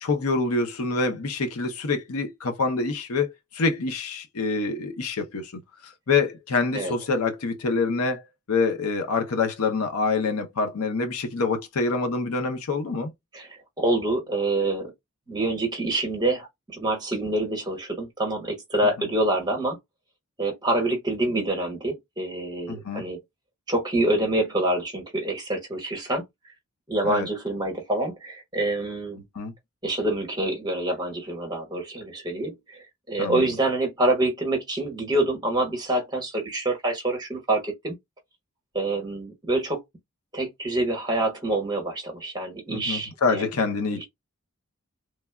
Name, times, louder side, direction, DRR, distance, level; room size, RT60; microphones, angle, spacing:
voice 1, 0.0-8.2 8.5-13.1 19.0-19.1 22.7-23.0 27.0-27.3 29.4-29.5 33.2-33.5 42.7-44.0, left 4 dB, 80° left, 0.6 m, -26 dB
voice 2, 13.8-14.9 15.3-19.8 20.4-23.2 23.7-26.2 26.9-29.2 29.8-38.0 38.7-39.8 40.3-43.5 43.9-44.0, right 1 dB, 20° right, 1.0 m, -26 dB
3.2 x 2.3 x 2.2 m
head